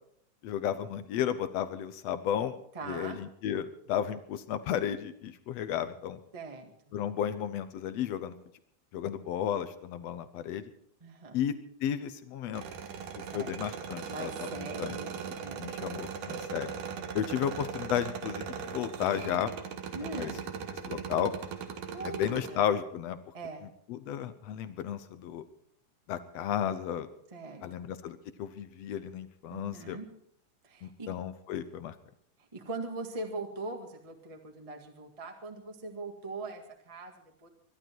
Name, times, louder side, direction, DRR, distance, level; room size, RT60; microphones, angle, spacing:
voice 1, 0.4-6.2 6.9-8.3 8.9-10.6 11.3-12.6 13.3-15.0 15.6-16.7 17.1-19.5 20.2-20.3 20.7-21.3 22.0-23.2 23.9-25.4 26.1-27.1 27.6-30.0 30.8-32.0, left 9 dB, 70° left, 12 dB, 1.6 m, -33 dB
voice 2, 2.7-3.2 6.3-6.7 11.0-11.4 13.3-13.5 14.1-15.6 19.9-20.4 21.9-22.6 23.3-23.7 27.3-27.8 29.5-30.1 30.6-31.1 32.5-37.5, right 3 dB, 15° right, 3 dB, 1.2 m, -41 dB
sound 1, 12.5-22.5, right 7 dB, 80° right, 3.0 m, -39 dB
22.5 x 11.5 x 4.6 m, 0.69 s
omnidirectional pair, 3.7 m